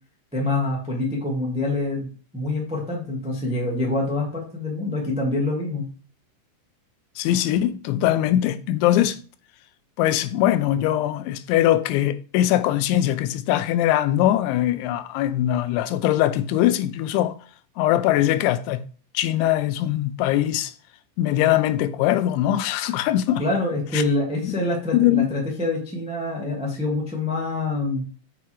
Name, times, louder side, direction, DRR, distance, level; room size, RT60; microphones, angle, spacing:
voice 1, 0.3-2.1 2.3-5.9 23.4-28.0, left 2 dB, 10° right, 0.4 m, -25 dB
voice 2, 7.2-9.2 10.0-17.3 17.8-18.8 19.1-20.7 21.2-23.4 23.9-24.0 24.4-24.6 24.9-25.3, left 13 dB, 85° left, 2.9 m, -21 dB
7.5 x 5.6 x 4.7 m
omnidirectional pair, 5.3 m